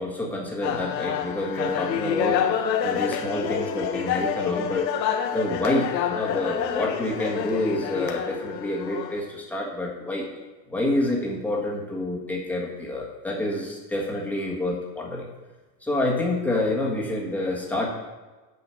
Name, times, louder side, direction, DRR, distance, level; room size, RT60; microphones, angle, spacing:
voice 1, 0.0-2.5 2.8-4.9 5.3-10.3 10.7-15.3 15.8-17.9, left 1 dB, 5° left, -3 dB, 1.5 m, -28 dB
sound 1, 0.6-9.2, left 8 dB, 85° left, 1.4 m, -27 dB
9.2 x 6.1 x 8.1 m, 1.2 s
supercardioid pair, 170°, 49 cm